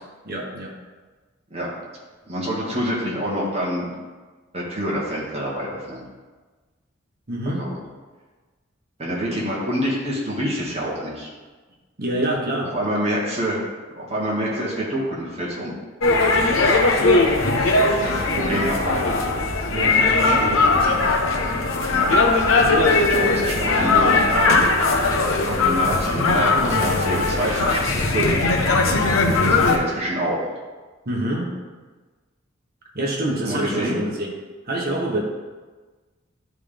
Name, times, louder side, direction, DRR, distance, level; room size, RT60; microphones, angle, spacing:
voice 1, 0.2-0.7 7.3-7.7 12.0-12.7 19.7-21.0 31.0-31.5 32.9-34.3 34.6-35.2, right 1 dB, 50° right, -2 dB, 1.4 m, -26 dB
voice 2, 2.3-3.9 4.5-6.0 7.4-7.8 9.0-11.3 12.6-13.6 13.9-15.7 17.7-19.1 21.9-22.1 22.8-24.6 25.4-28.4 29.5-30.4 33.4-34.0, equal, 30° right, -6 dB, 1.9 m, -26 dB
sound 1, 16.0-29.8, left 3 dB, 70° left, 0.8 m, -19 dB
11.0 x 3.7 x 3.4 m, 1.3 s
head